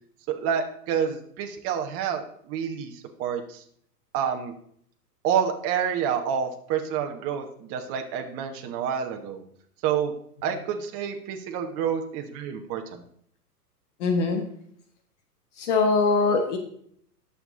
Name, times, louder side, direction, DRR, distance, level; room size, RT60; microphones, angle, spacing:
voice 1, 0.4-3.6 4.1-4.5 5.2-9.4 9.8-10.1 10.4-13.0, right 8 dB, 30° right, 4 dB, 1.1 m, -28 dB
voice 2, 14.0-14.4 15.6-16.6, left 4 dB, 50° left, 5 dB, 1.6 m, -22 dB
10.5 x 7.0 x 3.8 m, 0.64 s
hypercardioid pair, 115°, 47 cm